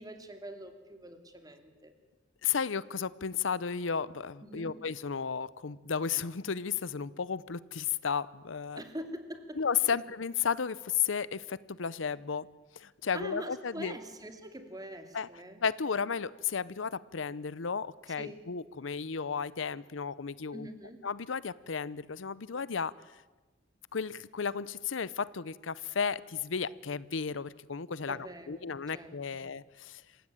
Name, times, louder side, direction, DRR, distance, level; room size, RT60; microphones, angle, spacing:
voice 1, 0.0-1.9 4.4-4.8 8.8-9.6 9.9-10.0 13.1-15.6 18.2-18.5 20.5-21.0 28.1-29.4, right 1 dB, 20° right, 7 dB, 2.5 m, -44 dB
voice 2, 2.4-8.8 9.6-12.5 12.8-14.0 15.1-15.3 15.6-20.7 21.0-22.9 23.9-30.0, left 6 dB, 80° left, 19 dB, 0.7 m, -33 dB
27.0 x 16.5 x 9.0 m, 1.2 s
head